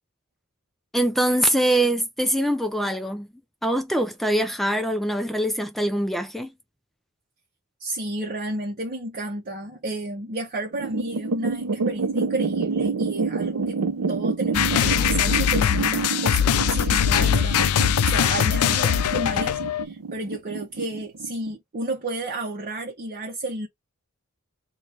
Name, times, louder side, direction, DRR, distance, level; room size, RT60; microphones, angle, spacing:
voice 1, 0.9-3.3 3.6-6.5, right 1 dB, ahead, 0.3 m, -23 dB
voice 2, 7.8-13.8 14.1-23.7, right 1 dB, 40° right, 0.7 m, -32 dB
sound 1, 10.7-21.5, right 4 dB, 80° right, 0.6 m, -28 dB
sound 2, 14.5-19.8, left 9 dB, 75° left, 0.4 m, -21 dB
4.0 x 2.3 x 3.2 m
head